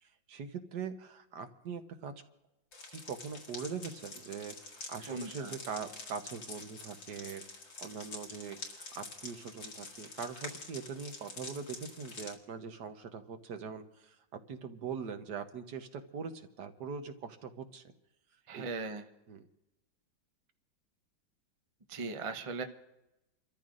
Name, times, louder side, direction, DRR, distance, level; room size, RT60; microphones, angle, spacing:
voice 1, 0.0-2.1 2.9-7.4 7.8-17.9 18.5-18.6 19.3-19.5, right 6 dB, 65° right, 7 dB, 1.6 m, -42 dB
sound 1, 2.7-12.3, left 3 dB, 70° left, 2.5 m, -47 dB
voice 2, 5.1-5.5 18.5-19.0 21.9-22.6, right 3 dB, 35° right, 6 dB, 0.4 m, -38 dB
30.0 x 13.5 x 2.5 m, 0.93 s
omnidirectional pair, 2.1 m